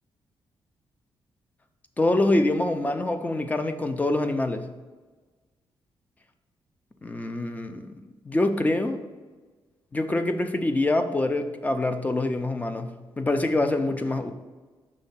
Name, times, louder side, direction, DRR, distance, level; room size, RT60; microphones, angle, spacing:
voice 1, 2.0-4.7 7.0-7.9 8.2-9.0 9.9-14.3, left 2 dB, 15° left, 8 dB, 0.5 m, -25 dB
5.5 x 3.7 x 5.6 m, 1.3 s
cardioid pair, 125°, 9 cm